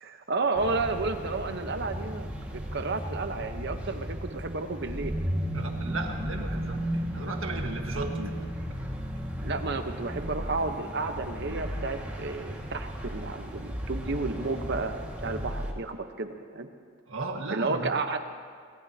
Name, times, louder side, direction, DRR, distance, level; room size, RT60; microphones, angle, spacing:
voice 1, 0.0-5.2 9.4-16.7 17.5-18.2, right 3 dB, 60° right, 7 dB, 1.1 m, -32 dB
sound 1, 0.6-15.7, equal, 10° right, 1.9 m, -35 dB
voice 2, 5.5-6.9 7.1-8.4 8.7-8.8 17.1-17.9, right 3 dB, 75° right, 2 dB, 1.7 m, -35 dB
24.5 x 19.5 x 2.9 m, 2.1 s
head